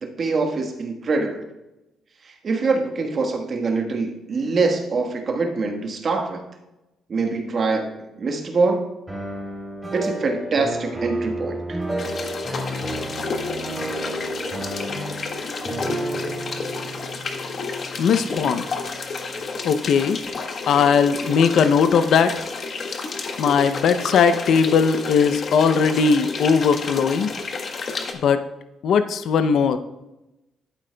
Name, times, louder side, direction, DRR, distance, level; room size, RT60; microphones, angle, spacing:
voice 1, 0.0-1.5 2.4-6.4 7.1-8.9 9.9-11.8, right 3 dB, 45° right, 4 dB, 1.3 m, -24 dB
sound 1, 9.1-19.0, right 1 dB, 5° right, 2.7 m, -31 dB
sound 2, 12.0-28.1, left 4 dB, 50° left, 1.1 m, -31 dB
voice 2, 18.0-18.6 19.6-20.2 20.7-22.3 23.4-27.3 28.2-28.4 28.8-29.8, left 6 dB, 70° left, 10 dB, 0.5 m, -18 dB
11.5 x 8.8 x 2.3 m, 0.97 s
cardioid pair, 90°, 0 cm